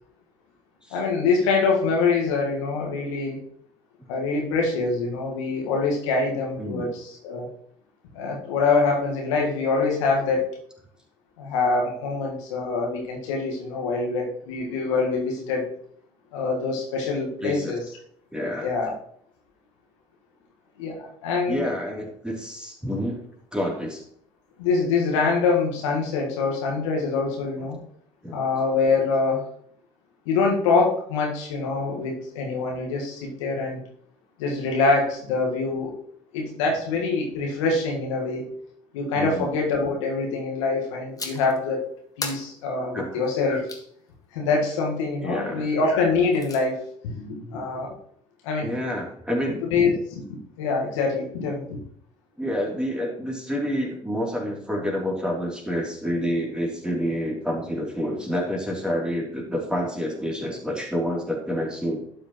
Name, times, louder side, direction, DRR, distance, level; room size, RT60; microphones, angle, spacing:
voice 1, 0.9-3.4 4.1-7.5 8.1-10.5 11.4-15.7 16.3-17.8 18.6-18.9 20.8-21.6 24.6-27.8 28.3-29.4 30.2-33.8 34.4-35.9 36.3-38.5 38.9-41.9 42.2-43.7 44.3-47.9 48.4-48.7 49.6-50.2 50.6-51.8, left 4 dB, 75° left, 0 dB, 1.6 m, -24 dB
voice 2, 6.6-6.9 17.4-17.7 18.3-18.7 21.5-23.2 23.5-24.0 28.2-28.4 39.1-39.5 42.9-43.2 45.2-45.7 48.6-49.6 52.4-62.0, equal, 5° right, -1 dB, 3.1 m, -28 dB
sound 1, 41.2-41.6 42.2-43.9 46.0-46.6, left 3 dB, 20° left, 1.6 m, -37 dB
11.5 x 6.9 x 3.1 m, 0.65 s
hypercardioid pair, 55°, 16 cm